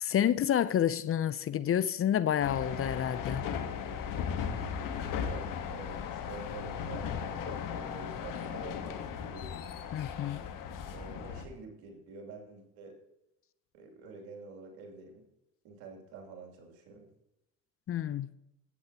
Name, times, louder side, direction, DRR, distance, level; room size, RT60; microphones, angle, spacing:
voice 1, 0.0-3.5 9.9-10.4 17.9-18.3, left 10 dB, 40° left, 0.5 m, -29 dB
sound 1, 2.4-11.4, left 7 dB, 65° left, 1.3 m, -37 dB
voice 2, 4.5-9.5 10.9-12.9 13.7-15.2 15.6-17.1, right 4 dB, 85° right, 2.8 m, -48 dB
15.0 x 8.5 x 2.9 m
supercardioid pair, 75°, 35 cm